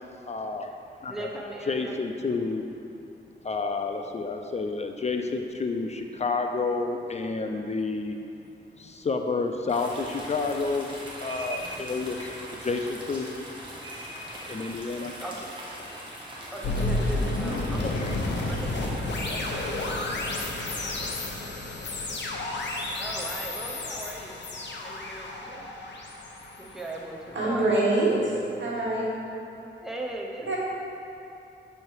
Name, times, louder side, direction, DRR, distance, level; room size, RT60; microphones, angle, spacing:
voice 1, 0.3-0.7 1.0-1.3 1.7-2.6 3.4-8.2 8.8-10.9 11.2-13.3 14.5-15.1 17.8-18.2 19.2-19.4, left 4 dB, 35° left, 4 dB, 0.4 m, -30 dB
voice 2, 1.1-2.0 11.6-11.9 15.2-15.6 16.5-18.0 18.4-19.0 23.0-24.4 24.8-25.7 26.6-27.7 28.5-28.6 29.8-30.6, right 1 dB, ahead, -2 dB, 0.7 m, -38 dB
sound 1, 9.7-21.1, right 1 dB, 25° right, 1.3 m, -41 dB
sound 2, 16.6-27.7, left 2 dB, 70° left, 0.8 m, -31 dB
voice 3, 27.3-29.1 30.5-30.6, right 2 dB, 80° right, -5 dB, 1.3 m, -25 dB
6.6 x 3.2 x 4.6 m, 2.7 s
cardioid pair, 70°, 19 cm